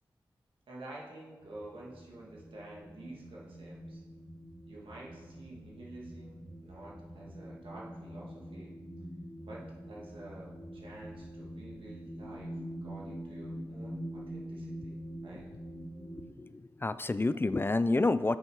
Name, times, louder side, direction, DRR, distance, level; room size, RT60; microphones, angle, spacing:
voice 1, 0.7-4.0 4.7-8.8 9.4-12.6 12.8-15.0 15.2-15.5, right 1 dB, 85° right, -4 dB, 2.0 m, -49 dB
sound 1, 1.4-16.2, equal, 5° left, 2.3 m, -45 dB
voice 2, 16.2-18.4, left 2 dB, 25° left, 14 dB, 0.3 m, -29 dB
7.1 x 6.3 x 4.6 m, 1.3 s
cardioid pair, 40°, 9 cm